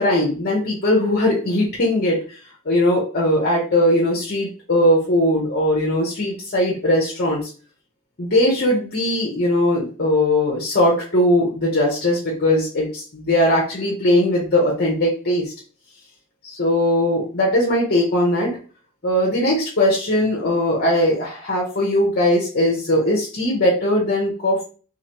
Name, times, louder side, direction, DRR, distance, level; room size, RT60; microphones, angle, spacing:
voice 1, 0.0-2.4 2.6-7.5 8.2-15.5 16.4-18.6 19.0-24.6, left 1 dB, 45° left, -2 dB, 1.0 m, -19 dB
3.9 x 2.8 x 3.0 m, 0.38 s
head